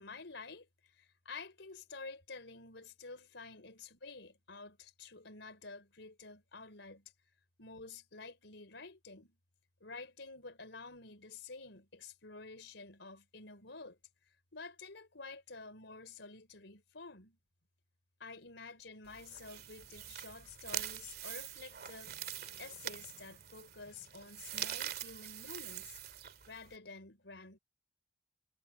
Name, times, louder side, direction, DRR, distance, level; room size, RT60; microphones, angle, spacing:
voice 1, 0.0-7.1 7.6-9.4 9.8-14.0 14.5-17.4 18.2-22.2 22.6-26.0 26.5-27.6, left 3 dB, 75° left, 4.2 m, -50 dB
sound 1, 19.0-26.8, right 10 dB, 55° right, 2.3 m, -44 dB
head